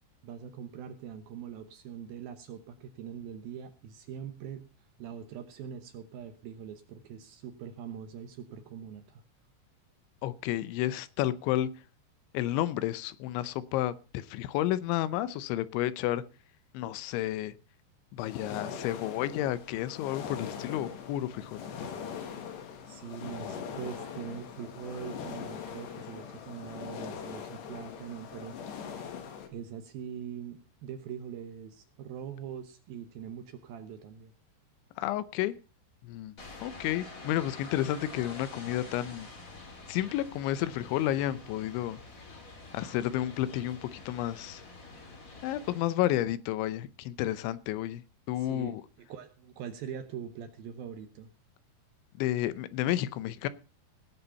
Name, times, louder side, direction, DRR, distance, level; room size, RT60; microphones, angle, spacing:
voice 1, 0.2-4.6 5.0-9.2 22.9-28.6 29.5-34.3 48.4-51.3, right 8 dB, 70° right, 8 dB, 2.4 m, -42 dB
voice 2, 10.2-11.7 12.3-16.2 16.7-17.5 18.1-21.6 35.0-35.6 36.0-36.4 36.6-39.3 39.9-42.0 42.7-44.6 45.4-48.0 48.3-48.8 52.2-53.5, left 13 dB, 90° left, 16 dB, 3.2 m, -31 dB
sound 1, 18.2-29.5, left 7 dB, 70° left, 3.9 m, -41 dB
sound 2, 36.4-45.8, left 3 dB, 40° left, 1.2 m, -47 dB
18.0 x 7.0 x 5.6 m, 0.34 s
omnidirectional pair, 5.2 m